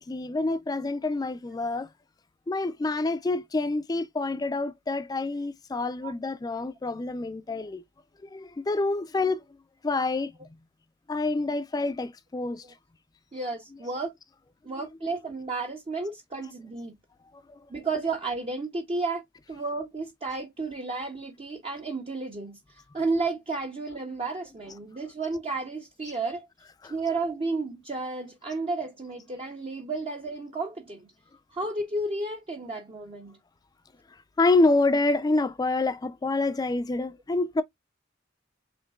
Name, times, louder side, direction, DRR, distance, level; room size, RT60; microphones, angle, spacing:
voice 1, 0.0-1.9 2.5-7.8 8.2-9.4 9.8-10.3 11.1-12.6 17.3-17.6 26.8-26.9 34.4-37.6, left 2 dB, 20° left, 0.3 m, -27 dB
voice 2, 13.3-14.1 14.6-17.0 17.7-26.5 26.9-31.1 31.5-33.4, right 3 dB, 30° right, 0.6 m, -32 dB
5.0 x 3.1 x 2.3 m
head